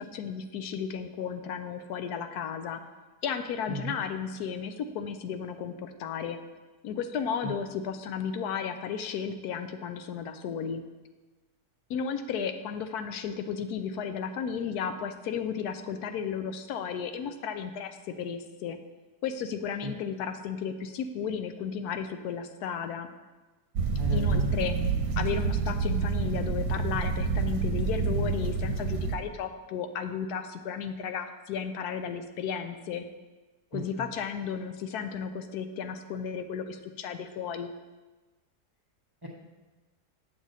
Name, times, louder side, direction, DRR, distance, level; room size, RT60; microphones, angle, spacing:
voice 1, 0.0-2.8 3.2-6.4 6.8-10.8 11.9-18.8 19.2-23.1 24.1-24.7 25.2-33.0 33.7-37.7, left 7 dB, 80° left, 9 dB, 1.1 m, -34 dB
voice 2, 3.7-4.0 7.4-7.5 19.8-19.9 24.0-24.5 33.7-34.1 39.2-39.3, right 1 dB, 25° right, -1 dB, 0.5 m, -35 dB
sound 1, 23.8-29.2, right 5 dB, 70° right, 1.1 m, -28 dB
7.4 x 7.2 x 4.0 m, 1.2 s
omnidirectional pair, 1.7 m